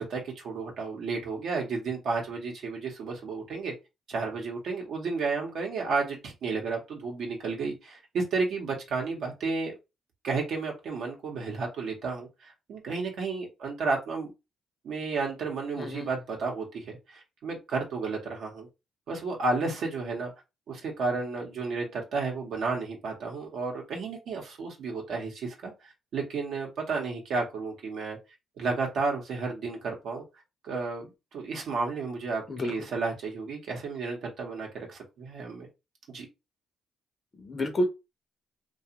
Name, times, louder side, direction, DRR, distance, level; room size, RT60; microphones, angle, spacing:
voice 1, 0.0-3.7 4.1-9.7 10.2-14.3 14.8-18.7 19.1-20.3 20.7-28.2 28.6-30.2 30.6-35.7 36.1-36.3, right 4 dB, 70° right, 0.8 m, -32 dB
voice 2, 15.8-16.1 32.5-32.7 37.4-37.8, left 1 dB, 30° left, 0.5 m, -29 dB
2.4 x 2.3 x 2.8 m
cardioid pair, 90°, 0 cm